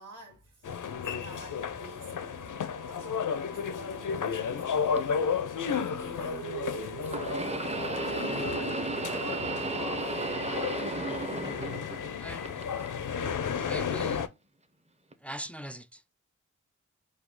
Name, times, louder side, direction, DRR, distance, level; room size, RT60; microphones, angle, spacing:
voice 1, 0.0-2.4 3.2-10.8 11.4-11.5 13.5-13.6, right 1 dB, 85° right, 1.1 m, -49 dB
sound 1, 0.6-14.3, left 6 dB, 85° left, 0.6 m, -33 dB
sound 2, 1.5-11.2, right 7 dB, 65° right, 0.6 m, -45 dB
sound 3, 5.0-5.1 7.1-12.1 12.4-13.2 14.0-14.1 15.1-15.2, right 2 dB, 20° right, 0.8 m, -34 dB
voice 2, 12.2-12.6 13.5-14.3 15.2-16.1, equal, 5° left, 0.4 m, -41 dB
5.0 x 2.3 x 3.8 m
wide cardioid pair, 60°, 30 cm